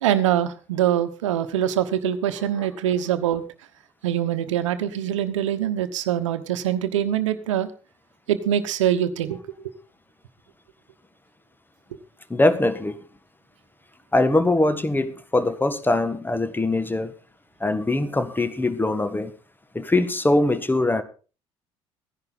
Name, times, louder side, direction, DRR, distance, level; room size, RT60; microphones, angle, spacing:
voice 1, 0.0-3.4 4.0-7.7 8.3-9.4, right 10 dB, 80° right, 1.1 m, -23 dB
voice 2, 12.3-13.0 14.1-17.1 17.6-19.3 19.7-21.0, left 2 dB, 15° left, 1.6 m, -22 dB
15.0 x 10.5 x 4.0 m
hypercardioid pair, 60°, 16 cm